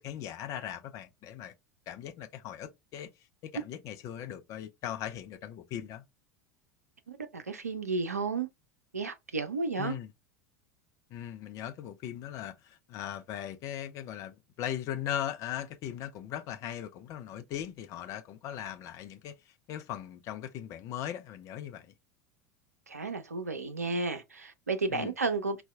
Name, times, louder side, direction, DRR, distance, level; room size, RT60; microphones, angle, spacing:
voice 1, 0.0-1.5 1.9-3.1 3.4-6.0 9.8-10.1 11.1-21.9 24.9-25.1, left 10 dB, 40° left, 0.5 m, -39 dB
voice 2, 7.1-8.5 8.9-10.0 22.9-25.6, right 3 dB, 85° right, 0.5 m, -32 dB
4.1 x 2.2 x 2.2 m
figure-of-eight pair, 80°, 8 cm